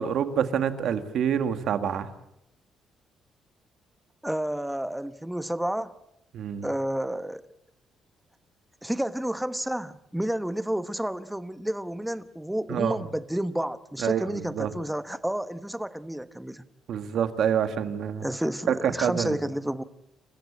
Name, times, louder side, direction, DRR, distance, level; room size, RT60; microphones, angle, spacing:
voice 1, 0.0-2.1 6.3-6.7 12.7-13.1 14.0-14.7 16.9-18.3 18.7-19.4, right 8 dB, 70° right, 1.9 m, -27 dB
voice 2, 4.2-5.9 6.6-7.4 8.8-16.7 18.2-19.8, right 1 dB, 5° right, 1.2 m, -30 dB
28.5 x 15.5 x 8.7 m
cardioid pair, 90°, 0 cm